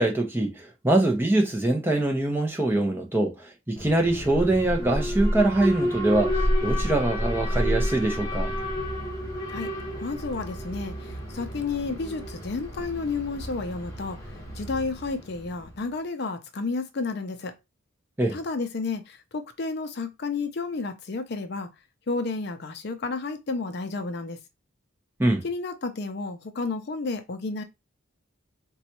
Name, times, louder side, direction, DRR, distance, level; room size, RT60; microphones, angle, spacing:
voice 1, 0.0-8.5 18.2-18.4 25.2-25.4, right 2 dB, 10° right, 0.6 m, -24 dB
Alarm, 3.8-15.8, equal, 15° left, 1.0 m, -30 dB
voice 2, 10.0-14.2 14.6-17.5 18.3-21.7 22.1-24.4 25.4-27.6, left 3 dB, 50° left, 0.5 m, -31 dB
3.9 x 2.3 x 2.9 m
head